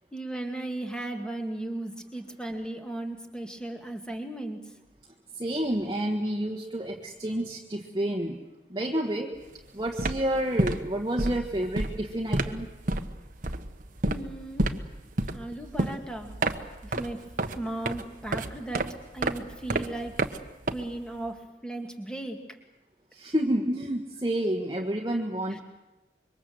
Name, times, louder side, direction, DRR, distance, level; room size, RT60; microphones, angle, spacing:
voice 1, 0.1-4.6 14.0-14.7 15.3-16.3 16.8-17.2 17.5-18.9 19.1-20.2 20.7-22.4 25.5-25.6, right 1 dB, 5° left, 4 dB, 2.2 m, -36 dB
voice 2, 5.4-8.4 8.7-9.3 9.7-12.7 23.1-25.6, right 1 dB, 20° right, 0 dB, 1.5 m, -29 dB
sound 1, 9.4-9.6 9.9-21.3, right 2 dB, 45° right, 1.2 m, -31 dB
26.0 x 23.5 x 7.8 m, 1.1 s
head